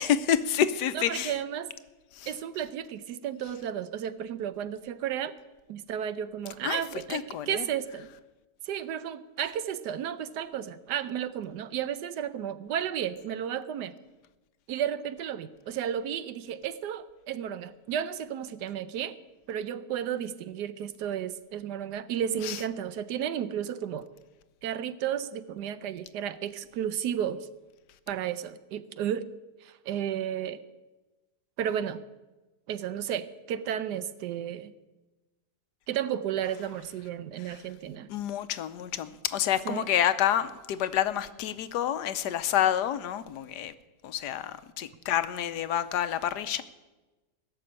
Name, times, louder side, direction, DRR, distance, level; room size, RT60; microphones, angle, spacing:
voice 1, 0.0-1.4 2.1-2.4 6.6-6.8 7.1-7.7 22.4-22.6 37.4-37.6 38.1-43.7 44.0-46.6, left 10 dB, 80° left, 1.3 m, -28 dB
voice 2, 1.1-1.7 2.3-5.3 5.7-8.1 8.7-13.9 14.7-19.2 19.5-24.1 24.6-27.5 28.1-29.3 29.6-30.6 31.6-32.0 32.7-34.7 35.9-38.1 39.6-39.9, right 9 dB, 80° right, 1.3 m, -33 dB
17.0 x 6.8 x 8.8 m
omnidirectional pair, 1.8 m